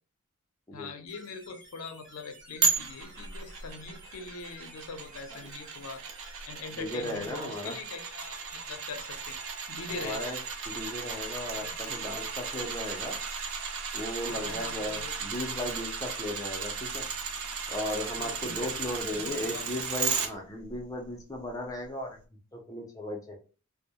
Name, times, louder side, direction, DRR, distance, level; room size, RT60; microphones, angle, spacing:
voice 1, 0.7-6.0 6.4-9.4 9.7-10.3 11.6-12.1 14.3-15.6 18.2-18.8 19.1-19.8, left 4 dB, 85° left, 7 dB, 0.5 m, -42 dB
sound 1, 1.1-6.4, right 1 dB, 20° right, 1.0 m, -54 dB
sound 2, 2.6-20.3 20.7-20.8, right 5 dB, 70° right, 0.4 m, -35 dB
voice 2, 6.8-7.8 9.9-10.4 10.7-13.2 13.9-17.1 17.7-22.2 22.5-23.4, left 1 dB, 15° left, 0 dB, 0.5 m, -36 dB
2.2 x 2.0 x 2.7 m, 0.36 s
head